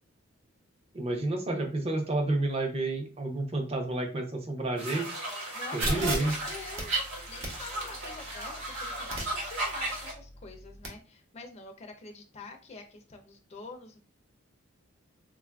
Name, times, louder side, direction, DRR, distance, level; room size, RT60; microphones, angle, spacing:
voice 1, 0.9-5.0 5.7-6.3, right 2 dB, 30° right, 3 dB, 0.6 m, -30 dB
sound 1, 4.8-10.1, right 2 dB, 90° right, 1.3 m, -35 dB
voice 2, 5.5-14.0, left 3 dB, 30° left, 3 dB, 0.4 m, -46 dB
sound 2, 5.8-10.9, right 1 dB, 65° right, 0.9 m, -38 dB
3.8 x 2.4 x 2.2 m, 0.36 s
head